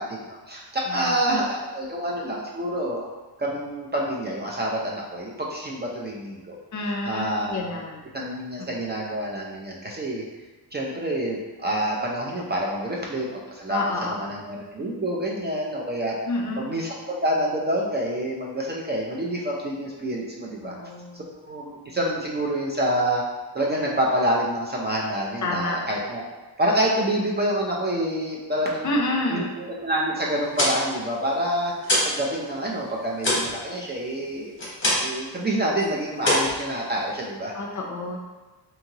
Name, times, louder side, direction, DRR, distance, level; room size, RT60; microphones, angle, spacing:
voice 1, 0.0-3.1 3.4-6.6 6.8-7.8 8.1-10.2 10.7-16.2 16.6-20.7 21.1-23.2 23.5-26.3 26.6-31.7 32.0-34.5 34.9-37.5, right 1 dB, 25° right, -3 dB, 0.4 m, -27 dB
voice 2, 6.7-8.0 13.7-14.3 16.3-16.6 20.6-21.2 25.4-25.8 28.8-29.5 37.5-38.2, left 2 dB, 45° left, 1 dB, 0.5 m, -28 dB
sound 1, 30.3-32.2 32.5-35.2 35.5-35.9 36.2-37.3, left 1 dB, 30° left, 1.0 m, -25 dB
2.8 x 2.7 x 2.7 m, 1.2 s
wide cardioid pair, 120°, 42 cm